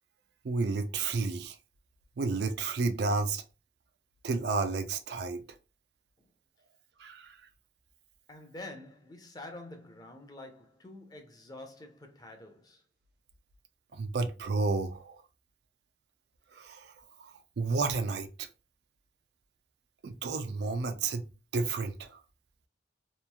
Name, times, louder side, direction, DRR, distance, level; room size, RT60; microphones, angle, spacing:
voice 1, 0.4-1.5 2.2-3.4 4.2-5.4 7.0-7.3 14.0-15.2 16.6-16.8 17.6-18.3 20.0-21.3 21.5-22.1, right 4 dB, 65° right, 0.4 m, -31 dB
voice 2, 8.3-12.8, left 2 dB, 20° left, 0.6 m, -47 dB
3.0 x 2.4 x 2.2 m
head